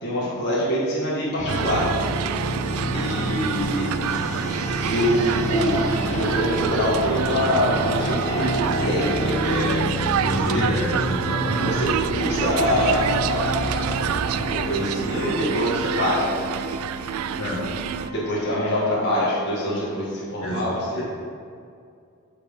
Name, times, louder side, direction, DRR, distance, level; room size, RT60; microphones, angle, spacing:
voice 1, 0.0-1.9 2.9-3.9 4.9-9.8 10.2-10.7 11.6-14.0 14.3-16.3 18.1-21.0, equal, 55° left, -8 dB, 1.6 m, -25 dB
sound 1, 1.4-15.5, equal, 35° left, 0.8 m, -29 dB
sound 2, 1.5-18.1, right 8 dB, 75° right, 0.3 m, -28 dB
Organ, 8.1-18.8, left 1 dB, 50° right, 1.2 m, -37 dB
voice 2, 10.3-11.8 17.4-17.6 20.4-20.7 21.0-21.1, equal, 80° left, -4 dB, 2.0 m, -28 dB
8.2 x 5.8 x 3.8 m, 2.3 s
head